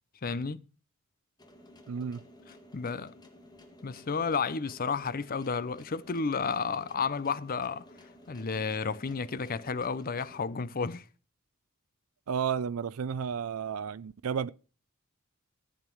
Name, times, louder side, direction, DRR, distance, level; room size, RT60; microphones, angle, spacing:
voice 1, 0.2-0.6 2.7-3.1 3.8-7.9 8.3-11.1, left 5 dB, 40° left, 0.6 m, -32 dB
sound 1, 1.4-10.4, left 1 dB, 20° left, 1.7 m, -54 dB
voice 2, 1.9-2.2 12.3-14.5, right 7 dB, 80° right, 0.4 m, -32 dB
14.5 x 7.4 x 4.5 m
head